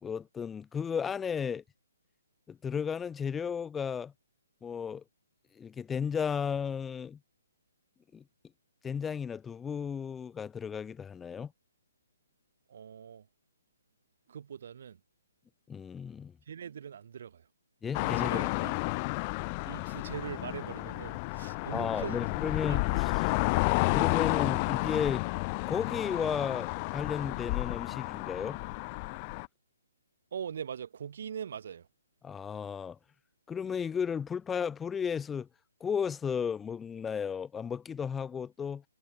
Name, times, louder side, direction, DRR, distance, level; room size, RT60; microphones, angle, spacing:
voice 1, 0.0-1.6 2.5-4.1 4.6-5.0 5.6-7.2 8.1-8.2 8.8-11.5 15.7-16.3 17.8-18.5 21.7-23.3 23.9-25.3 25.7-28.6 32.2-33.0 33.5-35.5 35.8-38.8, left 7 dB, 10° left, 1.4 m, -34 dB
voice 2, 12.7-13.3 14.3-15.0 16.5-17.5 18.0-18.7 19.7-22.2 22.7-23.0 30.3-31.9, right 8 dB, 60° right, 2.8 m, -41 dB
sound 1, 17.9-29.5, left 28 dB, 30° left, 0.5 m, -31 dB
hypercardioid pair, 140°, 0 cm